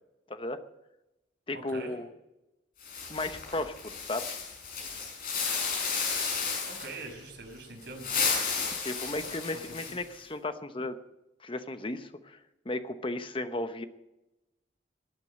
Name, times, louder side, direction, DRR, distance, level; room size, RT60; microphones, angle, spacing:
voice 1, 0.3-0.6 1.5-2.1 3.1-4.4 8.8-11.0 11.4-12.4 12.6-13.8, left 2 dB, 30° left, 10 dB, 0.9 m, -35 dB
sound 1, 2.8-7.0 7.8-10.2, left 5 dB, 50° left, 5.4 m, -33 dB
voice 2, 6.7-8.2 9.2-9.3 9.7-10.0, right 3 dB, 70° right, 0 dB, 5.9 m, -43 dB
19.0 x 9.1 x 6.5 m, 0.95 s
head